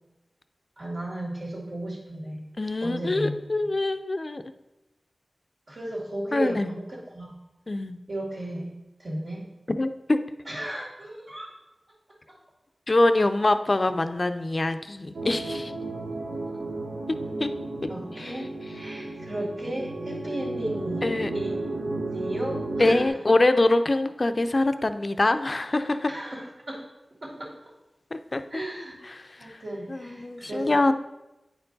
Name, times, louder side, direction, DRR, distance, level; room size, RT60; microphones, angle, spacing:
voice 1, 0.8-2.5 2.8-3.4 5.7-7.3 8.1-8.7 9.0-9.4 10.4-11.5 12.3-12.4 17.9-21.1 21.3-21.6 21.8-23.1 26.1-26.9 27.2-27.6 28.5-29.0 29.4-30.9, right 1 dB, 65° right, -5 dB, 2.3 m, -35 dB
voice 2, 2.6-4.4 6.3-6.7 7.7-8.0 9.7-10.2 12.9-15.7 17.4-17.5 18.2-18.3 21.0-21.3 22.8-26.1 28.1-28.4 29.2-29.6 29.9-30.9, left 2 dB, 45° left, 10 dB, 0.4 m, -24 dB
sound 1, 15.1-23.1, right 2 dB, 85° right, 1.0 m, -33 dB
9.3 x 4.4 x 4.0 m, 0.99 s
cardioid pair, 50°, 0 cm